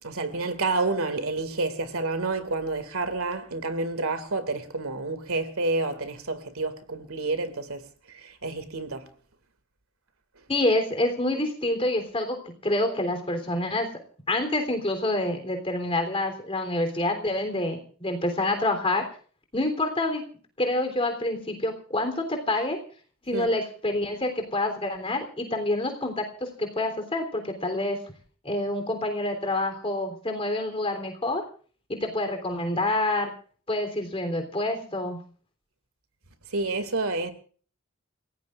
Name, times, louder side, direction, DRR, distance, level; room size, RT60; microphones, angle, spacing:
voice 1, 0.0-9.1 23.3-23.5 36.5-37.3, right 3 dB, 85° right, 2.3 m, -29 dB
voice 2, 10.5-13.9 14.3-19.1 19.5-20.2 20.6-22.8 23.3-28.0 28.4-31.4 31.9-33.3 33.7-35.2, left 1 dB, 25° left, 3.5 m, -27 dB
29.0 x 17.0 x 2.5 m
head